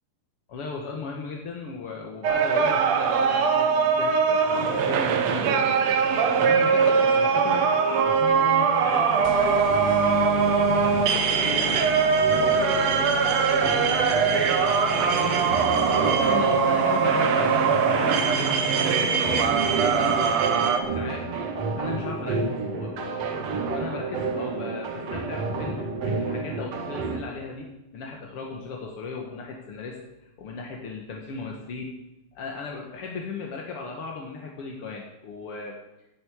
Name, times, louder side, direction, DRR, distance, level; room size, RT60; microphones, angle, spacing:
voice 1, 0.5-7.7 8.0-9.7 10.2-13.9 14.3-15.8 16.2-21.3 21.8-32.0 32.3-35.8, left 4 dB, 55° left, -1 dB, 1.6 m, -37 dB
sound 1, 2.2-20.8, right 6 dB, 70° right, 1.6 m, -22 dB
sound 2, 9.2-20.6, left 7 dB, 85° left, 3.1 m, -36 dB
sound 3, 12.2-27.2, right 4 dB, 55° right, 2.0 m, -31 dB
13.0 x 7.9 x 8.7 m, 0.97 s
omnidirectional pair, 4.8 m